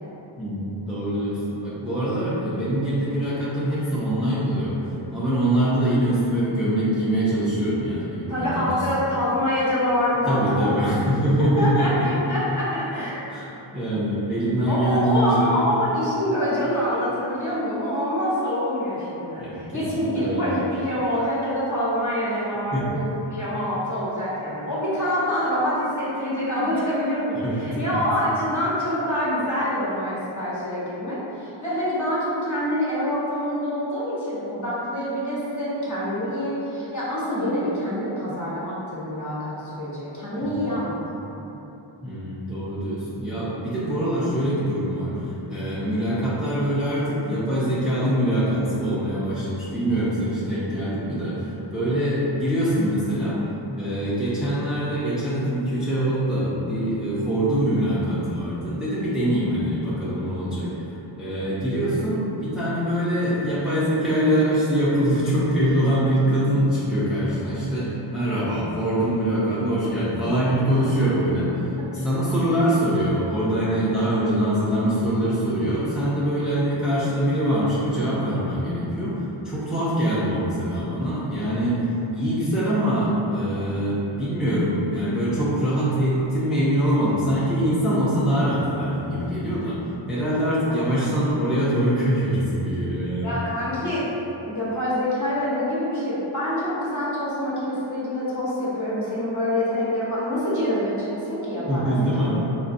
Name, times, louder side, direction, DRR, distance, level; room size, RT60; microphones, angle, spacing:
voice 1, 0.4-4.8 5.1-8.8 10.3-12.1 13.3-15.5 19.4-20.5 22.7-22.9 27.3-27.9 40.4-40.7 42.0-53.4 53.8-60.7 61.2-71.7 72.0-89.8 90.1-93.4 101.7-102.4, equal, ahead, -10 dB, 0.6 m, -24 dB
voice 2, 8.3-10.9 11.4-13.1 14.6-23.0 23.3-41.0 41.4-41.5 71.9-72.4 90.7-90.8 93.2-94.1 94.4-101.9 102.2-102.5, equal, 35° left, -9 dB, 1.0 m, -26 dB
3.9 x 2.4 x 2.6 m, 2.9 s
wide cardioid pair, 75°, 49 cm